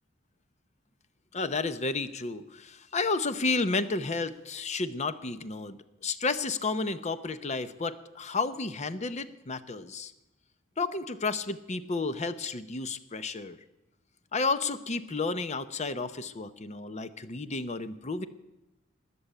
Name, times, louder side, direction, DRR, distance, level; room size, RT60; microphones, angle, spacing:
voice 1, 1.3-5.8 6.0-10.1 10.8-13.6 14.3-18.3, left 3 dB, 35° left, 13 dB, 0.8 m, -31 dB
20.0 x 7.0 x 8.8 m, 0.96 s
head